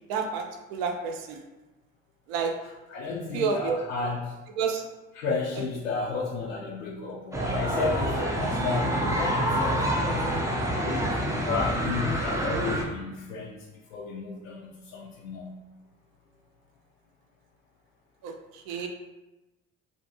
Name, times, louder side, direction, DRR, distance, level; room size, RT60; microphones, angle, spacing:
voice 1, 0.1-0.4 0.7-1.4 2.3-2.5 3.3-3.8 4.6-4.8 18.2-18.9, right 5 dB, 65° right, 3 dB, 0.5 m, -29 dB
voice 2, 2.9-4.4 5.2-10.3 10.7-15.5, left 4 dB, 80° left, -4 dB, 0.5 m, -33 dB
sound 1, 7.3-12.8, equal, 10° right, 0.4 m, -27 dB
2.5 x 2.5 x 2.6 m, 1.1 s
hypercardioid pair, 55°, 38 cm